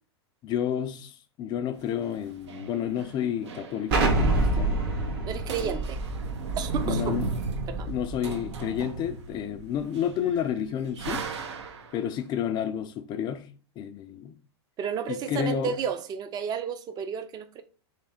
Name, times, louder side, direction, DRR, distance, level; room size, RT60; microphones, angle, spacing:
voice 1, 0.4-4.8 5.6-5.7 6.8-7.3 7.9-11.2 11.9-13.5 13.8-14.3 15.1-15.7, left 9 dB, 30° left, 0.4 m, -30 dB
sound 1, 1.8-4.3 4.5-4.6 4.9-5.2 5.4-12.0, right 3 dB, 80° right, 0.7 m, -37 dB
Explosion, 3.9-8.6, right 2 dB, 55° right, 1.2 m, -27 dB
voice 2, 5.2-6.0 6.6-7.2 7.7-7.9 14.8-17.6, right 7 dB, 30° right, 0.5 m, -32 dB
3.3 x 3.1 x 4.2 m
hypercardioid pair, 110°, 14 cm